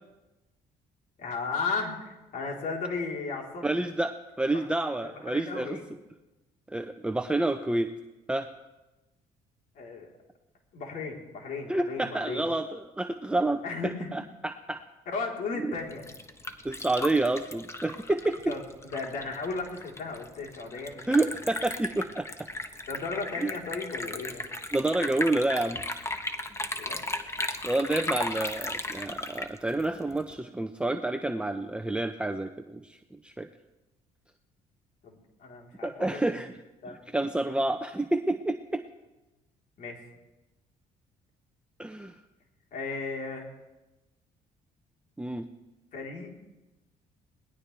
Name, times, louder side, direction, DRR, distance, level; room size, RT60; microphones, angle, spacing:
voice 1, 1.2-3.7 4.5-4.6 5.0-5.8 9.8-10.1 10.7-12.5 13.6-14.1 15.1-16.0 18.5-18.6 18.9-21.3 22.9-24.4 26.8-27.1 35.0-36.4 36.8-37.0 39.8-40.0 42.7-43.5 45.9-46.3, left 4 dB, 65° left, 0 dB, 4.1 m, -35 dB
voice 2, 3.6-5.8 6.7-7.9 8.3-8.5 11.7-14.8 15.6-15.7 16.6-18.5 21.1-22.3 23.4-23.5 24.7-25.8 27.6-33.0 33.2-33.5 35.8-36.6 36.9-38.8 41.8-42.1 45.2-45.5, right 2 dB, 5° right, 7 dB, 0.7 m, -29 dB
Liquid, 15.8-30.3, left 2 dB, 20° left, 1.3 m, -36 dB
21.5 x 19.0 x 3.5 m, 1.0 s
cardioid pair, 100°, 15 cm